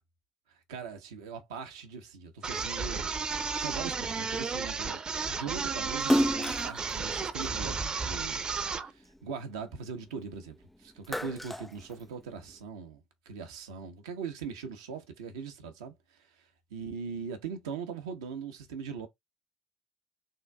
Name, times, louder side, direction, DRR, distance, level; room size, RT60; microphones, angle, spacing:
voice 1, 0.5-3.1 3.6-5.0 5.3-19.1, right 6 dB, 80° right, 0.7 m, -41 dB
sound 1, 2.4-8.9, right 5 dB, 35° right, 0.7 m, -33 dB
Splash splatter, 6.0-8.6 9.0-10.5 10.8-12.5, equal, 5° left, 0.3 m, -31 dB
3.7 x 2.5 x 3.3 m
figure-of-eight pair, 50°, 2 cm